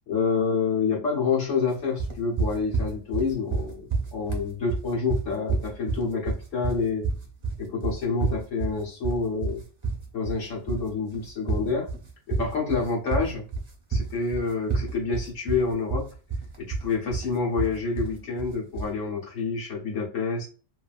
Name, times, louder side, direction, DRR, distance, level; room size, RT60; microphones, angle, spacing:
voice 1, 0.1-7.1 7.6-9.6 10.1-11.9 12.3-13.4 13.9-16.1 16.6-20.5, left 4 dB, 85° left, -2 dB, 1.5 m, -28 dB
sound 1, 2.0-19.0, right 4 dB, 35° right, 0.5 m, -29 dB
2.7 x 2.7 x 2.4 m, 0.36 s
omnidirectional pair, 1.3 m